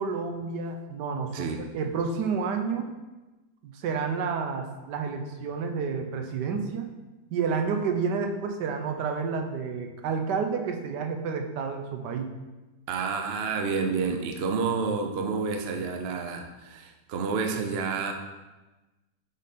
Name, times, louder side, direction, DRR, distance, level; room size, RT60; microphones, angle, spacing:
voice 1, 0.0-2.9 3.6-6.9 7.3-12.3, right 5 dB, 90° right, 4 dB, 1.4 m, -30 dB
voice 2, 12.9-18.1, right 5 dB, 60° right, 4 dB, 0.7 m, -29 dB
7.5 x 3.6 x 4.1 m, 1.1 s
omnidirectional pair, 1.8 m